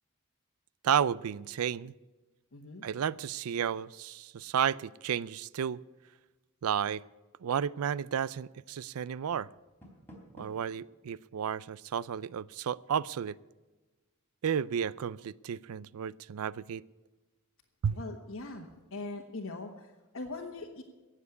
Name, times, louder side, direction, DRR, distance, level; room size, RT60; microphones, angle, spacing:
voice 1, 0.8-1.9 2.8-5.8 6.6-7.0 7.4-9.5 10.3-13.4 14.4-16.8 17.8-18.0, right 8 dB, 85° right, 21 dB, 0.4 m, -32 dB
voice 2, 2.5-2.8 17.9-20.8, left 3 dB, 65° left, -1 dB, 1.3 m, -41 dB
Door, 9.5-10.8, equal, 10° left, 3.3 m, -52 dB
18.0 x 7.4 x 8.1 m, 1.2 s
head